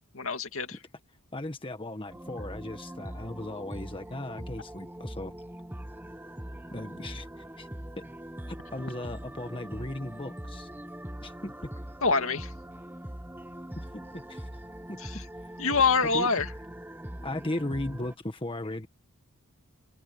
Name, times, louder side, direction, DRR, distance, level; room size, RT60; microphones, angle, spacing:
voice 1, 0.1-0.7 12.0-12.5 15.0-15.2 15.6-16.5, left 4 dB, 65° left, 2.4 m, -25 dB
voice 2, 1.3-5.3 6.7-7.7 8.0-8.1 8.5-10.7 11.2-11.7 13.7-14.5 14.9-15.0 16.0-16.3 17.2-18.9, left 1 dB, 25° left, 1.6 m, -37 dB
sound 1, 2.1-18.1, right 1 dB, 10° right, 1.1 m, -42 dB
head